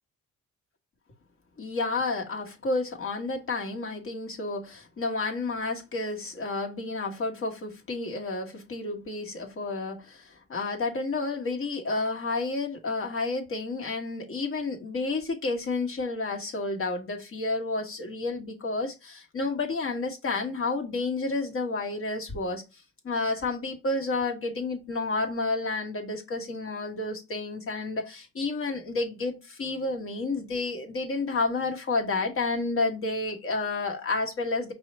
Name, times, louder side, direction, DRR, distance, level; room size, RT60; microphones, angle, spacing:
voice 1, 1.6-22.6 23.0-34.7, left 3 dB, 45° left, 1.4 m, -30 dB
5.3 x 2.2 x 4.1 m
cardioid pair, 90°, 30 cm